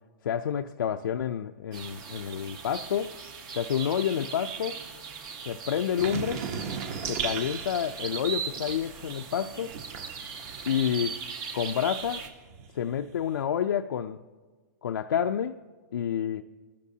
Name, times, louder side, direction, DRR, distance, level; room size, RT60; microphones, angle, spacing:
voice 1, 0.2-3.1 3.5-4.8 5.5-6.4 7.1-9.7 10.7-11.2 11.5-12.2 12.7-14.2 14.8-15.6 15.9-16.4, left 9 dB, 85° left, 0.5 m, -29 dB
sound 1, 1.7-12.3, right 6 dB, 75° right, 2.3 m, -39 dB
sound 2, 6.0-11.3 11.6-13.4, right 7 dB, 45° right, 1.1 m, -38 dB
25.0 x 14.0 x 2.8 m
hypercardioid pair, 140°, 11 cm